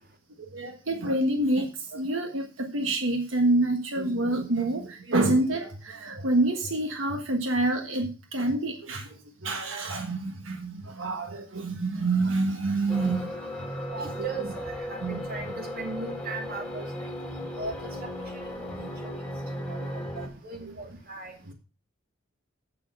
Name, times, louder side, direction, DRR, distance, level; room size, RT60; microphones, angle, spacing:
voice 1, 0.4-13.3 13.9-14.2 15.0-15.2 18.8-18.9 19.7-20.3, right 2 dB, 85° right, 3 dB, 1.4 m, -27 dB
sound 1, 12.9-20.3, left 1 dB, 5° left, 2.1 m, -36 dB
voice 2, 14.0-18.1 18.5-18.7 19.0-19.2 19.9-20.0 20.4-21.3, right 3 dB, 50° right, 3 dB, 2.4 m, -38 dB
8.4 x 6.4 x 6.2 m, 0.34 s
head